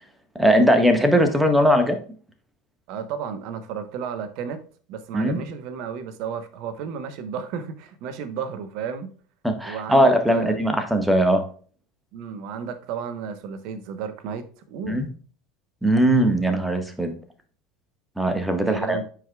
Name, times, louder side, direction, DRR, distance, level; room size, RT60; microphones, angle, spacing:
voice 1, 0.3-2.0 5.1-5.4 9.4-11.4 14.9-15.1 15.8-17.1 18.2-19.0, equal, 5° right, 1.5 m, -19 dB
voice 2, 2.9-4.6 4.9-9.1 9.6-10.6 12.1-15.0 18.6-19.0, right 7 dB, 55° right, 1.1 m, -33 dB
9.0 x 4.9 x 2.4 m
figure-of-eight pair, 75°, 0 cm